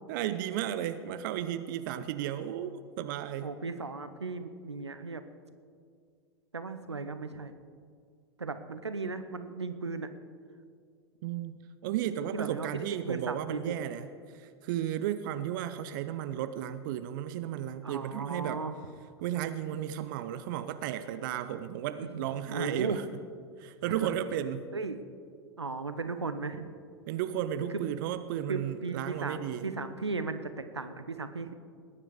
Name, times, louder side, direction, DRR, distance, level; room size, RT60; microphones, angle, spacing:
voice 1, 0.1-3.5 11.2-18.6 19.2-23.0 23.6-24.7 27.1-29.7, right 11 dB, 50° right, 12 dB, 0.7 m, -34 dB
voice 2, 3.4-5.2 6.5-7.6 8.4-10.1 12.3-13.7 17.8-18.8 22.1-23.0 23.9-24.1 24.7-25.0 25.6-26.7 27.7-27.8 28.5-31.5, right 4 dB, 85° right, 10 dB, 0.9 m, -36 dB
20.5 x 9.9 x 4.9 m, 2.1 s
figure-of-eight pair, 90°, 14 cm